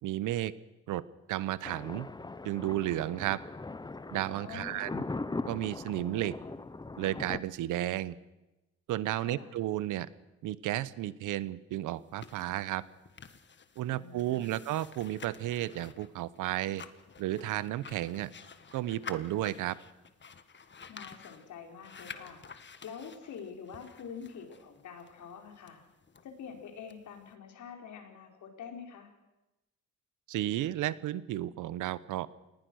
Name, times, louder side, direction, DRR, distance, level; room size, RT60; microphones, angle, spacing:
voice 1, 0.0-0.5 0.9-1.0 1.3-2.1 2.4-3.4 4.1-5.0 5.5-6.3 7.0-8.2 8.9-10.1 10.4-12.8 13.8-16.8 17.2-18.3 18.7-19.8 30.3-32.3, right 14 dB, 90° right, 17 dB, 1.0 m, -33 dB
Thunder, 1.6-7.4, left 3 dB, 15° left, 0.9 m, -40 dB
voice 2, 4.4-5.0 9.2-9.6 13.9-14.5 20.9-22.4 22.8-25.8 26.2-29.1, left 7 dB, 75° left, 3 dB, 4.9 m, -46 dB
sound 1, 11.9-27.3, left 6 dB, 35° left, 1.6 m, -51 dB
27.5 x 19.5 x 6.4 m, 1.0 s
cardioid pair, 90°, 30 cm